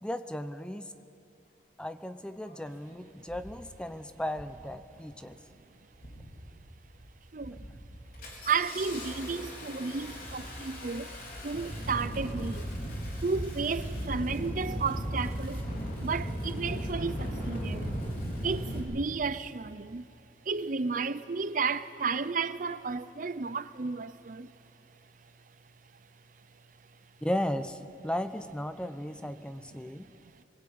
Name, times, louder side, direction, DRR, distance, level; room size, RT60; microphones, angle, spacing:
voice 1, 0.0-0.9 1.8-5.4 27.2-30.1, left 1 dB, 5° left, 0.7 m, -35 dB
Engine starting, 2.5-2.6 3.3-3.6 4.3-4.6 5.0-5.5 5.9-6.5 6.9-7.1 7.4-18.8, equal, 55° left, 4.5 m, -37 dB
voice 2, 7.3-7.7 8.4-11.2 11.4-12.7 13.2-15.6 16.0-17.9 18.4-20.0 20.4-24.5 29.9-30.1, right 4 dB, 50° right, 0.6 m, -33 dB
23.0 x 20.0 x 8.6 m
head